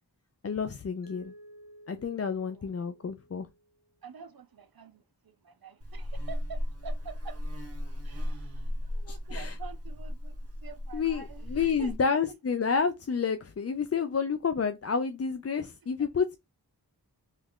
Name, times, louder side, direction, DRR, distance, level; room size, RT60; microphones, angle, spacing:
voice 1, 0.4-1.3 1.9-3.5 9.1-9.5 10.9-16.4, left 6 dB, 40° left, 0.4 m, -30 dB
Mallet percussion, 1.0-3.9, right 1 dB, 55° left, 1.2 m, -54 dB
voice 2, 4.0-7.4 8.0-12.4 15.6-15.7, right 6 dB, 60° right, 0.5 m, -47 dB
Buzz, 5.8-12.0, left 1 dB, 35° right, 1.0 m, -36 dB
3.1 x 2.4 x 3.6 m
wide cardioid pair, 45°, 40 cm